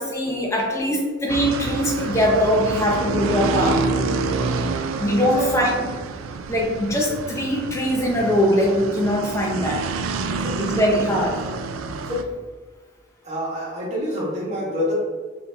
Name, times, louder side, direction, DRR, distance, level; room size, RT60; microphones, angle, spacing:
voice 1, 0.0-3.9 5.0-5.9 6.5-9.9 10.6-11.4, equal, 15° left, -1 dB, 0.5 m, -21 dB
sound 1, 1.3-12.2, right 3 dB, 85° right, 0.3 m, -27 dB
voice 2, 10.2-10.6 11.9-12.4 13.2-14.9, left 1 dB, 35° right, -7 dB, 1.2 m, -27 dB
4.1 x 2.7 x 2.7 m, 1.4 s
head